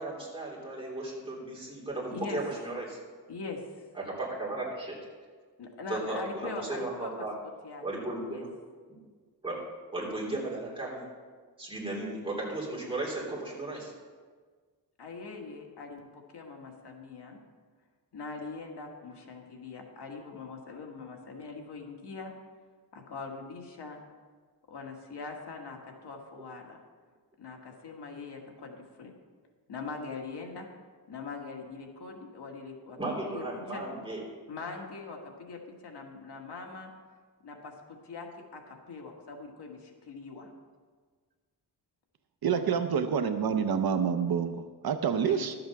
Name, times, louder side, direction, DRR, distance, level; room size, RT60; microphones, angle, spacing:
voice 1, 0.0-3.0 3.9-5.0 5.9-7.3 7.8-8.5 8.9-9.0 9.4-9.6 9.9-11.1 11.6-13.9 33.0-34.2, right 2 dB, 15° right, -5 dB, 3.3 m, -35 dB
voice 2, 3.3-3.9 5.6-7.3 7.6-7.8 8.3-8.4 15.0-17.4 18.1-22.3 22.9-24.0 24.7-26.8 27.4-29.1 29.7-30.7 31.1-33.0 33.3-33.4 33.7-33.8 34.5-36.9 37.4-38.3 38.5-40.5 42.7-42.9 45.3-45.4, left 4 dB, 75° left, 1 dB, 1.6 m, -42 dB
voice 3, 42.4-45.6, right 7 dB, 60° right, 8 dB, 0.6 m, -28 dB
12.0 x 7.8 x 5.9 m, 1.5 s
wide cardioid pair, 175°, 41 cm